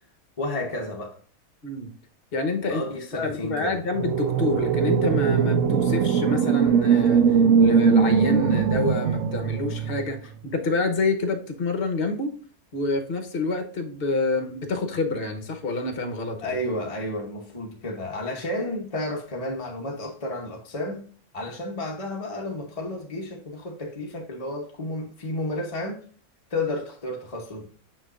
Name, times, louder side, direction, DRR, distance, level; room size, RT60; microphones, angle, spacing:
voice 1, 0.4-1.2 2.7-3.8 16.4-21.0 21.3-26.0 26.5-27.7, left 1 dB, 30° left, 0.8 m, -31 dB
voice 2, 2.3-2.8 3.2-12.3 12.7-16.6, left 2 dB, 45° left, 1.1 m, -27 dB
sound 1, 3.9-10.1, right 6 dB, 65° right, 0.9 m, -21 dB
6.4 x 6.2 x 2.4 m
omnidirectional pair, 1.5 m